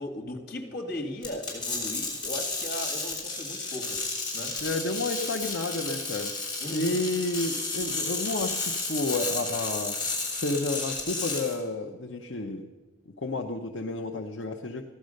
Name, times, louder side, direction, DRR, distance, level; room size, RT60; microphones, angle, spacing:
voice 1, 0.0-4.0 4.3-4.6 6.6-7.0, left 1 dB, 55° left, 4 dB, 2.2 m, -37 dB
sound 1, 1.2-11.5, left 3 dB, 25° left, 5.6 m, -32 dB
voice 2, 4.6-6.4 6.7-10.0 10.4-12.6 13.2-14.9, left 2 dB, 75° left, 2 dB, 0.8 m, -31 dB
15.5 x 11.5 x 6.5 m, 1.3 s
head